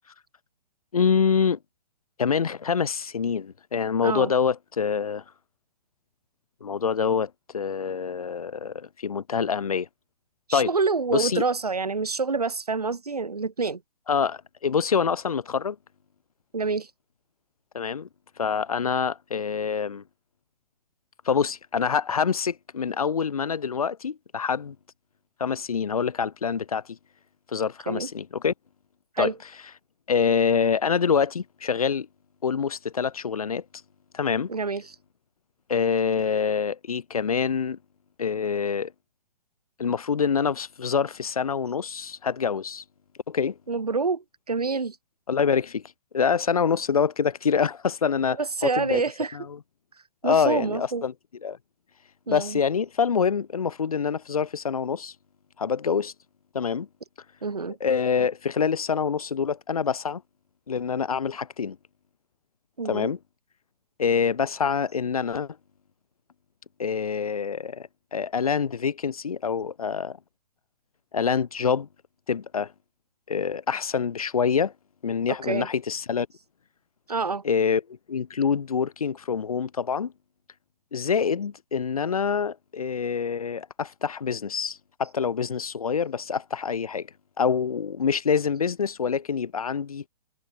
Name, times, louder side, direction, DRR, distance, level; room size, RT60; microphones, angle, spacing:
voice 1, 0.9-1.6 2.2-5.2 6.6-9.9 10.5-10.7 11.1-11.4 14.1-15.8 17.7-18.1 18.4-20.0 21.3-24.8 25.4-27.0 27.5-28.5 29.2-29.3 30.1-32.1 32.4-33.6 34.1-34.5 35.7-37.8 38.2-38.9 39.8-42.8 43.3-43.6 45.3-45.8 46.1-49.0 49.3-49.6 50.2-51.1 51.4-51.6 52.3-55.1 55.6-56.1 56.5-56.9 57.8-60.2 60.7-61.8 62.8-63.2 64.0-65.6 66.8-70.2 71.1-71.9 72.3-72.7 73.3-74.7 75.0-76.3 77.4-77.8 78.1-80.1 80.9-87.1 87.4-90.0, left 6 dB, 65° left, 4.2 m, -26 dB
voice 2, 4.0-4.3 10.5-13.8 16.5-16.9 27.9-28.1 29.2-29.4 34.5-34.9 43.7-45.0 48.3-49.4 50.2-51.1 52.3-52.6 57.4-57.8 59.2-59.3 62.8-63.1 75.3-75.7 77.1-77.4, right 4 dB, 75° right, 6.0 m, -27 dB
figure-of-eight pair, 120°, 20 cm